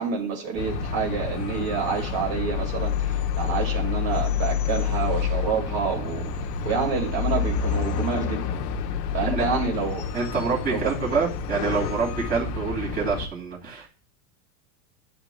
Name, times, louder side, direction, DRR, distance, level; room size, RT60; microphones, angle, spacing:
voice 1, 0.0-6.3 6.6-8.4 9.1-10.1 10.7-10.9, right 6 dB, 45° right, 0 dB, 2.4 m, -28 dB
sound 1, 0.6-13.3, left 7 dB, 85° left, 1.1 m, -28 dB
voice 2, 10.1-13.9, right 5 dB, 20° right, -4 dB, 2.4 m, -26 dB
10.5 x 7.0 x 2.3 m, 0.38 s
supercardioid pair, 140°, 47 cm